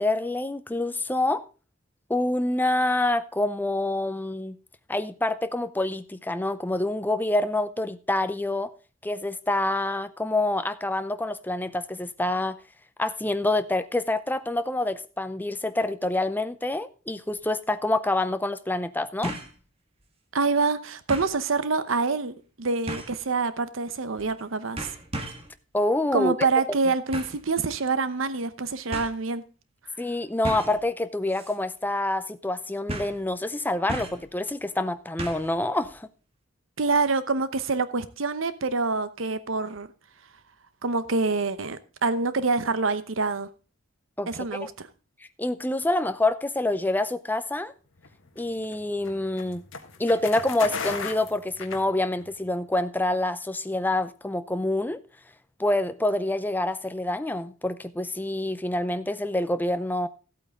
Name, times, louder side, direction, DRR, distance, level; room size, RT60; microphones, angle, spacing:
voice 1, 0.0-1.4 2.1-4.6 4.9-8.7 9.0-12.6 13.0-19.3 25.7-26.3 30.0-36.1 44.2-44.3 44.6-44.7 45.4-47.7 48.4-49.6 50.0-55.0 55.6-60.1, left 2 dB, 10° left, 0.6 m, -27 dB
sound 1, 17.3-17.4 19.2-19.6 20.0-20.1 21.1-21.4 22.9-23.2 24.2-24.4 24.8-25.5 27.1-27.4 28.4-28.5 28.9-29.1 30.4-30.8 31.3-31.6 31.8-31.9 32.9-33.2 33.9-34.3 35.2-35.5 35.8-35.9, right 1 dB, 30° right, 1.7 m, -35 dB
voice 2, 20.3-24.9 26.1-29.4 36.8-39.9 40.8-43.5 44.3-44.9, right 4 dB, 70° right, 0.9 m, -26 dB
sound 2, 48.0-52.4, left 5 dB, 65° left, 1.6 m, -36 dB
14.5 x 8.6 x 3.7 m
head